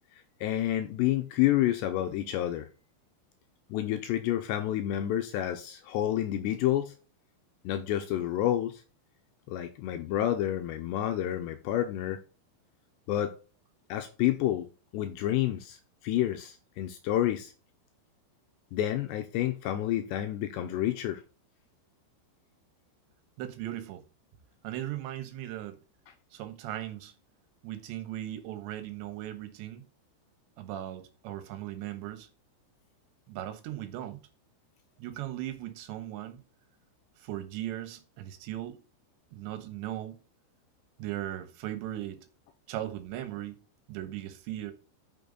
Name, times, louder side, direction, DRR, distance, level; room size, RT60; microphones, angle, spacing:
voice 1, 0.4-2.7 3.7-6.9 7.7-8.8 9.5-12.2 13.1-13.4 13.9-14.7 14.9-15.8 16.0-17.5 18.7-21.2, left 13 dB, 85° left, 2.6 m, -29 dB
voice 2, 23.4-24.0 24.6-25.8 26.3-27.1 27.6-29.8 30.6-32.3 33.3-34.2 35.0-36.4 37.2-38.8 39.3-40.2 41.0-42.2 42.7-43.6 43.9-44.7, right 13 dB, 75° right, 3.3 m, -38 dB
9.2 x 6.8 x 4.0 m
omnidirectional pair, 5.5 m